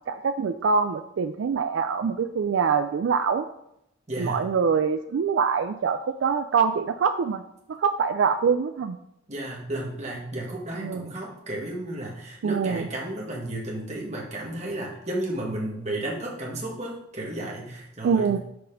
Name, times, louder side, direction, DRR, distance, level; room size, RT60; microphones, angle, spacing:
voice 1, 0.1-3.5 4.2-7.4 7.7-9.0 10.8-11.1 12.4-12.9 18.0-18.4, right 6 dB, 80° right, 8 dB, 0.3 m, -24 dB
voice 2, 4.1-4.5 9.3-18.4, right 1 dB, 35° right, -2 dB, 1.7 m, -33 dB
6.5 x 4.1 x 5.2 m, 0.81 s
head